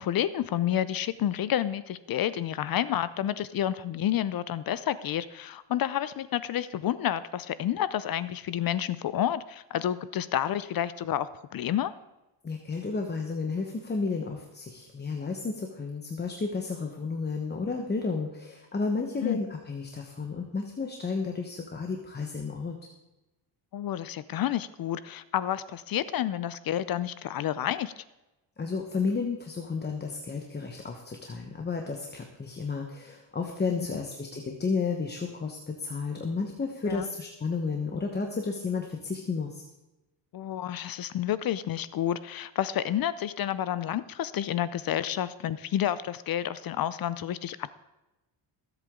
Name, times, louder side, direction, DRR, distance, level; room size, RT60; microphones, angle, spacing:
voice 1, 0.0-11.9 19.2-19.4 23.7-28.0 33.8-33.9 36.8-37.1 40.3-47.7, left 11 dB, 50° left, 16 dB, 0.6 m, -30 dB
voice 2, 12.4-22.7 28.6-39.6, left 4 dB, 20° left, 3 dB, 1.1 m, -32 dB
20.5 x 8.1 x 3.7 m, 1.0 s
cardioid pair, 125°, 45 cm